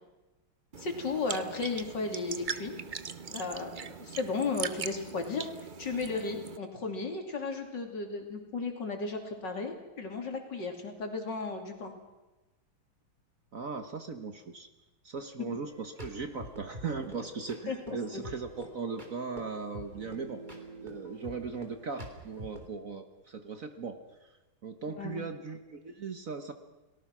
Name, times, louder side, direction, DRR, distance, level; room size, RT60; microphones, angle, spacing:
sound 1, 0.7-6.6, right 6 dB, 80° right, 0.4 m, -40 dB
voice 1, 0.8-2.8 3.3-5.5 5.8-11.9 17.7-18.2 24.9-25.2, left 4 dB, 60° left, 4 dB, 3.5 m, -35 dB
voice 2, 13.5-14.7 15.0-20.4 20.8-24.0 24.6-26.5, right 5 dB, 45° right, 8 dB, 1.4 m, -38 dB
sound 2, 15.6-22.7, right 1 dB, 20° right, 3.3 m, -47 dB
29.5 x 18.5 x 6.1 m, 1.1 s
omnidirectional pair, 2.2 m